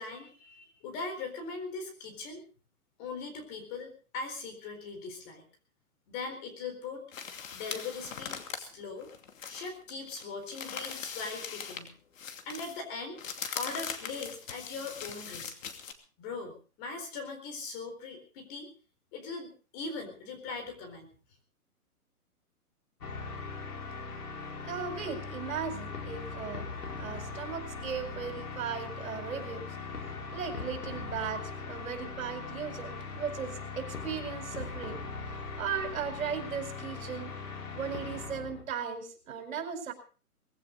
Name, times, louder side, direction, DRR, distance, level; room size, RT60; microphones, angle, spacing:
voice 1, 0.0-2.4 3.0-5.4 6.1-7.1 7.5-9.1 9.5-12.0 12.4-13.2 13.5-15.5 16.2-18.7 19.1-21.1, left 4 dB, 25° left, 5 dB, 4.2 m, -40 dB
sound 1, 7.1-11.9 12.2-15.9, left 7 dB, 60° left, 2.7 m, -40 dB
sound 2, 23.0-38.6, left 4 dB, 90° left, 5.4 m, -40 dB
voice 2, 24.6-26.7 27.0-29.6 30.3-35.0 35.2-37.3 37.7-39.9, right 7 dB, 60° right, 6 dB, 5.1 m, -37 dB
20.5 x 16.0 x 4.0 m, 0.38 s
hypercardioid pair, 160°, 44 cm